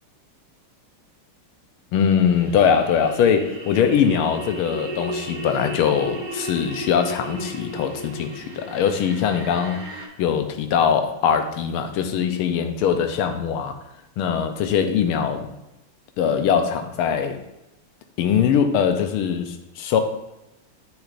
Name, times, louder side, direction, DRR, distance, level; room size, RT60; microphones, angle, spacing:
voice 1, 1.9-13.8 14.2-15.5 16.2-17.4 18.2-20.0, left 7 dB, 80° left, 7 dB, 1.5 m, -22 dB
sound 1, 2.3-10.1, right 1 dB, 40° right, 0.7 m, -34 dB
8.2 x 6.3 x 2.5 m, 0.93 s
omnidirectional pair, 2.4 m